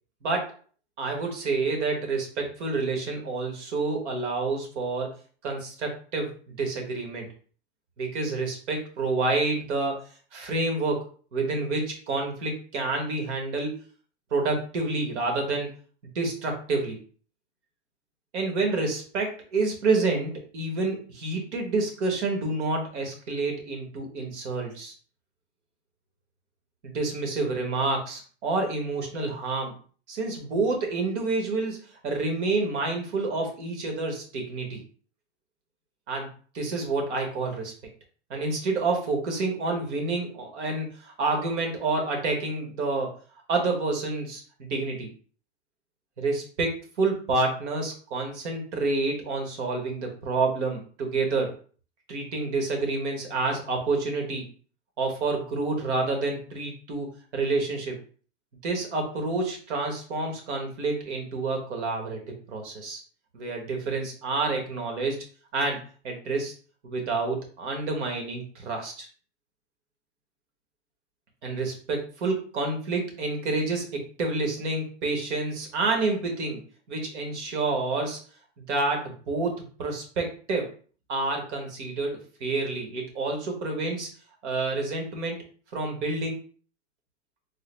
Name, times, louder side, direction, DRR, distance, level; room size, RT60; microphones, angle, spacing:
voice 1, 0.2-0.5 1.0-5.1 5.4-7.3 8.0-10.0 10.3-11.0 11.3-13.8 14.3-15.7 16.1-17.0 18.3-24.9 26.8-29.7 30.1-34.8 36.1-37.7 38.3-43.1 43.5-45.1 46.2-51.5 52.1-54.5 55.0-58.0 58.6-63.0 63.3-65.2 65.5-66.5 66.8-69.1 71.4-76.6 76.9-78.2 78.6-80.7 81.1-84.1 84.4-85.4 85.7-86.5, right 3 dB, 75° right, 2 dB, 1.4 m, -28 dB
3.7 x 2.1 x 3.2 m, 0.41 s
supercardioid pair, 150°, 35 cm